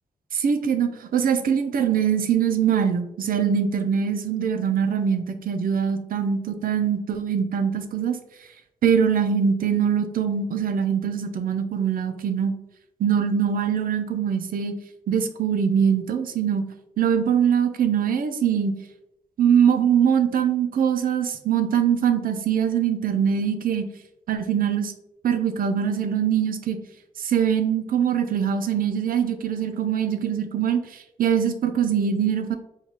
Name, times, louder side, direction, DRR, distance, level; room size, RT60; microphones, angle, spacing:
voice 1, 0.3-8.2 8.8-12.5 13.0-14.7 15.1-16.6 17.0-18.7 19.4-23.9 24.3-24.9 25.2-26.8 27.2-32.6, right 8 dB, 80° right, 8 dB, 0.4 m, -23 dB
4.4 x 2.3 x 2.8 m, 0.85 s
wide cardioid pair, 115°, 15 cm